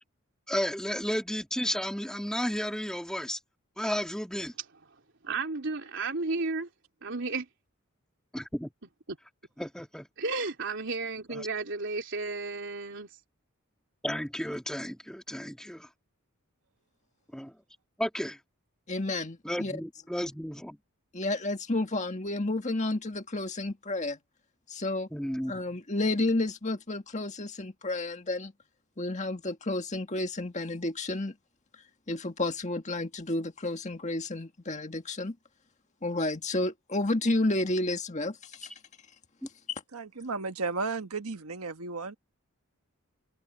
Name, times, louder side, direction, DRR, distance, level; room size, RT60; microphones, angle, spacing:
voice 1, 0.5-3.4 3.8-4.6 8.3-8.7 9.6-10.1 11.3-11.5 14.0-15.9 17.3-17.6 18.0-18.4 19.4-20.8 25.1-25.5 39.4-39.5, equal, 5° left, 2.1 m, -33 dB
voice 2, 5.2-6.7 7.0-7.5 10.2-13.1, right 3 dB, 60° right, 3.5 m, -33 dB
voice 3, 18.9-19.7 21.1-24.2 24.7-25.1 25.5-28.5 29.0-31.3 32.1-35.3 36.0-38.7, left 2 dB, 35° left, 1.8 m, -31 dB
voice 4, 39.9-42.2, right 4 dB, 85° right, 1.4 m, -34 dB
head